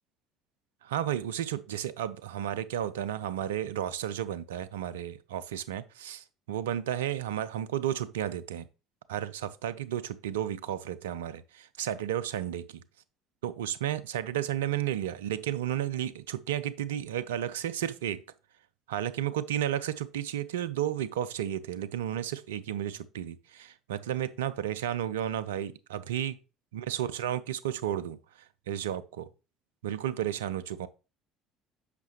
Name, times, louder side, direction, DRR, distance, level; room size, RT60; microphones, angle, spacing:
voice 1, 0.8-8.7 9.1-12.8 13.4-18.2 18.9-26.4 26.7-29.3 29.8-30.9, right 11 dB, 80° right, 0.5 m, -33 dB
8.1 x 5.9 x 2.9 m
hypercardioid pair, 60°, 0 cm